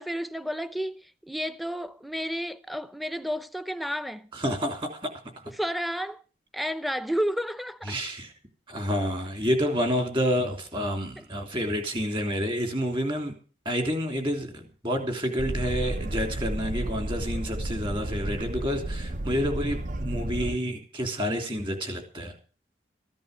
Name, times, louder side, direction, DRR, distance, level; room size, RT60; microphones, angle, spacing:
voice 1, 0.0-4.3 5.6-6.2 6.5-7.9, equal, ahead, 0.6 m, -31 dB
voice 2, 4.3-5.4 7.8-8.3 8.7-13.3 13.6-22.3, equal, 30° right, 3.1 m, -29 dB
Boat Water vehicle, 15.4-20.6, right 1 dB, 45° right, 0.6 m, -32 dB
14.5 x 10.5 x 6.7 m
head